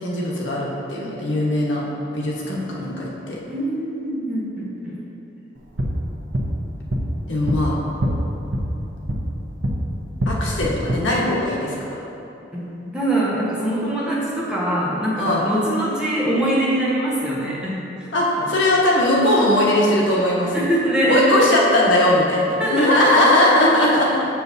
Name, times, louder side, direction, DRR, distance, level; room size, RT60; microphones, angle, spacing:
voice 1, 0.0-1.9 2.1-3.4 7.3-7.7 10.3-12.0 15.2-15.5 18.1-20.7 21.1-24.1, left 1 dB, 80° left, -4 dB, 1.2 m, -19 dB
voice 2, 3.5-5.0 12.5-18.1 18.4-18.5 20.5-21.5 22.6-23.3 23.5-24.2, right 1 dB, 5° right, -7 dB, 1.1 m, -23 dB
sound 1, 5.6-9.8 10.1-10.9, equal, 85° right, 0.8 m, -25 dB
7.3 x 6.7 x 2.7 m, 3.0 s
head